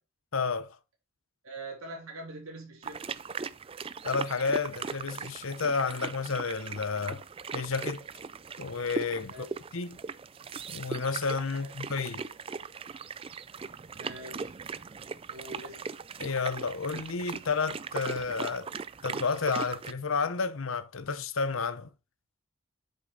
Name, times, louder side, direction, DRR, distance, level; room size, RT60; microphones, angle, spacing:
voice 1, 0.3-0.8 4.0-7.2 7.5-8.0 8.6-9.3 9.7-10.0 10.7-12.2 16.2-18.7 19.0-21.9, left 4 dB, 70° left, 0.8 m, -31 dB
voice 2, 1.4-3.1 9.3-9.5 11.5-11.7 14.0-14.6 15.3-15.8, right 2 dB, 85° right, 3.5 m, -43 dB
sound 1, 2.8-19.9, right 5 dB, 25° right, 0.3 m, -39 dB
8.1 x 6.5 x 3.9 m
head